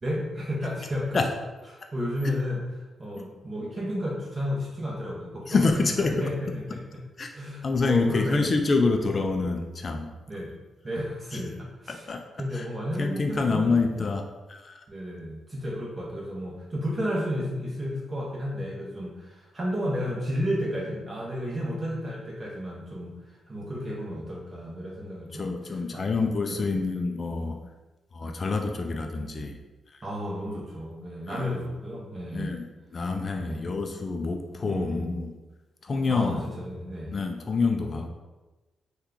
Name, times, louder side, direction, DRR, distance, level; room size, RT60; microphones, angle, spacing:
voice 1, 0.0-1.2 1.7-2.6 3.0-5.7 6.0-6.8 7.3-8.5 10.3-10.5 10.8-12.0 12.4-13.7 14.9-25.5 25.9-26.6 30.0-32.6 33.4-33.7 34.7-35.2 36.1-37.2, equal, 30° right, -4 dB, 0.7 m, -32 dB
voice 2, 5.5-6.3 7.2-7.3 7.6-10.1 11.3-11.4 11.9-12.2 12.5-12.7 13.0-14.9 25.3-27.7 28.1-29.6 29.9-30.1 31.3-31.5 32.3-32.7 32.9-35.3 35.8-36.4 37.1-38.1, left 3 dB, 40° left, 4 dB, 0.3 m, -27 dB
3.0 x 2.2 x 3.7 m, 1.2 s
cardioid pair, 85°, 0 cm